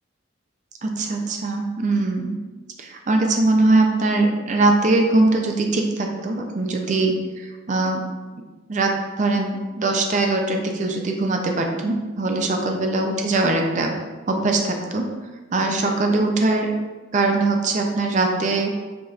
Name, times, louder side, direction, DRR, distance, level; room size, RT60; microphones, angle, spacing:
voice 1, 0.8-2.4 2.8-8.0 8.7-13.9 14.3-15.1 15.5-16.7 17.1-18.7, right 2 dB, 40° right, 3 dB, 0.4 m, -21 dB
4.8 x 2.8 x 2.4 m, 1.3 s
head